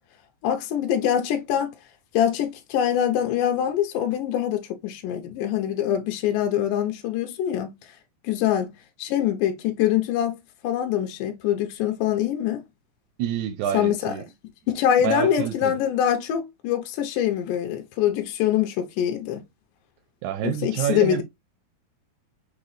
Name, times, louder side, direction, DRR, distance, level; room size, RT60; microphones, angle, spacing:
voice 1, 0.4-1.7 2.1-7.8 8.2-8.7 9.0-10.4 10.6-12.6 13.7-14.1 14.7-19.4 20.4-21.2, left 10 dB, 75° left, 2.2 m, -24 dB
voice 2, 13.2-14.3 15.0-15.8 20.2-21.2, right 11 dB, 80° right, 1.8 m, -28 dB
6.1 x 3.0 x 2.5 m
omnidirectional pair, 4.1 m